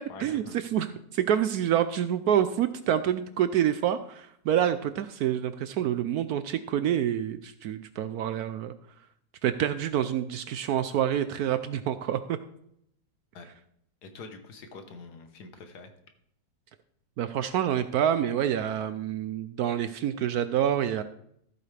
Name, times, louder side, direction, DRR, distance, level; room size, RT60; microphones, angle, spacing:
voice 1, 0.1-0.6 13.3-13.5 14.0-15.9, left 4 dB, 65° left, 7 dB, 1.6 m, -45 dB
voice 2, 0.7-8.7 9.4-12.4 17.2-21.0, right 10 dB, 70° right, 11 dB, 0.9 m, -27 dB
14.0 x 8.3 x 3.3 m, 0.72 s
omnidirectional pair, 1.9 m